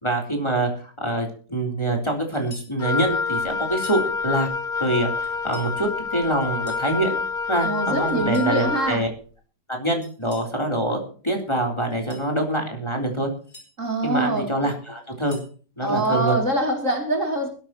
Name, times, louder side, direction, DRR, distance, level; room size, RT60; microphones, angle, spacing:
voice 1, 0.0-4.5 4.8-7.1 7.5-9.1 9.7-11.0 11.2-13.3 14.0-15.4 15.8-16.4, right 1 dB, 15° left, 2 dB, 3.6 m, -25 dB
metal-sliding-several-times, 2.3-2.8 3.7-4.1 5.2-5.7 6.4-6.9 8.1-8.6 10.0-10.5 11.8-12.3 13.2-13.7 15.0-15.6, left 2 dB, 35° left, 6.1 m, -47 dB
Wind instrument woodwind instrument, 2.8-9.0, left 5 dB, 65° left, 0.5 m, -27 dB
voice 2, 7.6-9.0 13.8-14.4 15.8-17.5, right 2 dB, 45° right, 2 dB, 3.6 m, -24 dB
21.0 x 13.5 x 3.0 m, 0.41 s
omnidirectional pair, 1.9 m